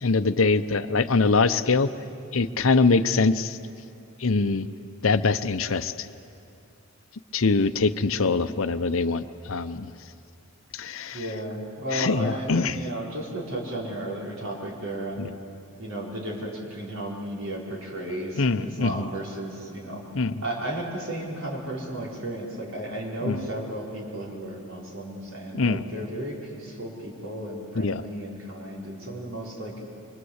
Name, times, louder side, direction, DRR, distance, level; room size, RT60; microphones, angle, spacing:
voice 1, 0.0-1.9 2.3-3.6 4.2-4.7 5.0-6.1 7.3-9.9 10.7-11.2 11.9-12.8 15.2-15.3 18.4-19.1 20.1-20.4 23.2-23.5 25.5-25.8 27.8-28.0, left 4 dB, 70° left, 11 dB, 0.8 m, -23 dB
voice 2, 8.1-8.5 11.1-15.3 15.8-20.0 20.4-29.7, right 1 dB, 65° right, -2 dB, 4.8 m, -34 dB
25.0 x 23.5 x 8.1 m, 2.6 s
head